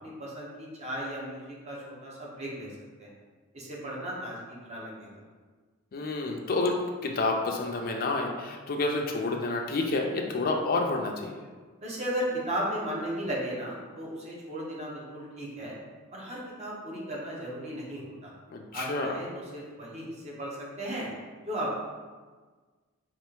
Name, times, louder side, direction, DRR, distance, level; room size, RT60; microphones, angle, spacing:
voice 1, 0.0-2.7 3.0-3.1 3.5-5.2 11.8-15.7 16.1-18.3 18.7-21.1 21.4-21.8, right 1 dB, 35° right, -5 dB, 0.9 m, -35 dB
voice 2, 5.9-11.4 18.5-19.1, left 3 dB, 45° left, 1 dB, 0.4 m, -29 dB
3.3 x 2.4 x 4.5 m, 1.4 s
head